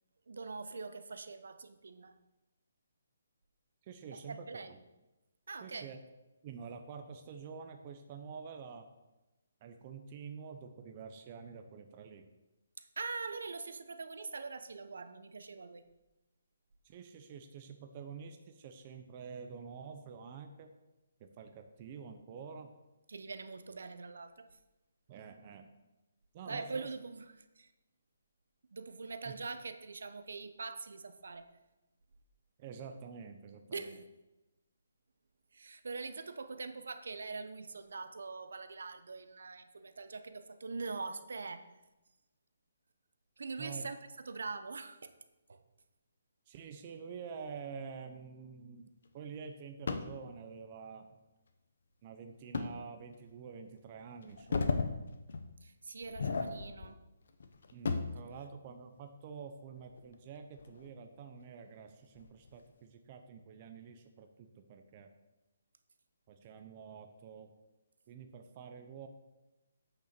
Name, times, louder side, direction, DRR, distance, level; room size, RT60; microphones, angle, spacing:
voice 1, 0.3-2.1 4.1-4.7 5.5-5.9 12.8-15.9 23.1-24.5 26.5-27.7 28.7-31.5 33.7-34.0 35.5-41.7 43.4-44.0 44.2-45.1 45.5-45.6 55.6-57.0, right 4 dB, 70° right, 10 dB, 0.9 m, -43 dB
voice 2, 3.8-4.8 5.6-6.0 6.4-8.9 9.6-12.3 16.8-20.7 21.2-22.8 25.1-25.7 26.3-26.9 29.2-29.3 32.6-34.0 43.6-43.9 46.5-51.2 52.0-54.9 57.7-65.1 66.3-67.5 68.1-69.1, right 6 dB, 20° right, 6 dB, 0.6 m, -48 dB
sound 1, 49.9-50.2 52.5-52.7 53.3-53.4 54.2-54.9 55.3-55.5 56.0-56.9 57.3-58.2 59.8-60.9 61.4-61.5 62.2-62.5, left 4 dB, 55° left, 1.0 m, -35 dB
8.4 x 6.7 x 6.7 m, 1.0 s
hypercardioid pair, 175°, 0 cm